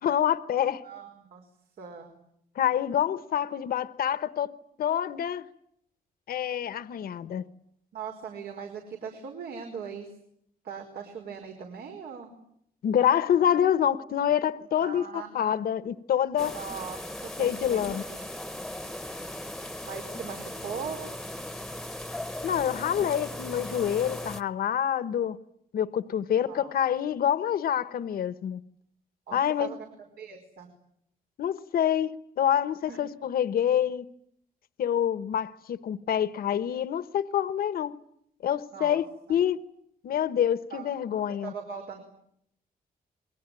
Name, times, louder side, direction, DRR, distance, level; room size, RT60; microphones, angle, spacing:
voice 1, 0.0-0.8 2.6-4.5 4.8-5.5 6.3-7.4 12.8-15.1 15.3-16.6 17.4-18.0 22.4-25.4 25.7-28.6 29.3-29.7 31.4-34.0 34.8-37.9 38.4-39.6 40.0-41.5, left 9 dB, 70° left, 1.1 m, -26 dB
voice 2, 0.8-1.5 1.8-2.2 7.9-10.1 10.6-12.3 14.8-15.4 16.5-17.8 18.1-18.3 19.8-21.1 26.5-26.7 29.3-29.8 30.2-30.7 32.9-33.0 38.7-39.0 40.7-40.9 41.4-42.0, right 6 dB, 85° right, 5.1 m, -40 dB
sound 1, 16.4-24.4, left 1 dB, 5° left, 1.1 m, -38 dB
28.5 x 23.0 x 9.1 m
wide cardioid pair, 170°, 16 cm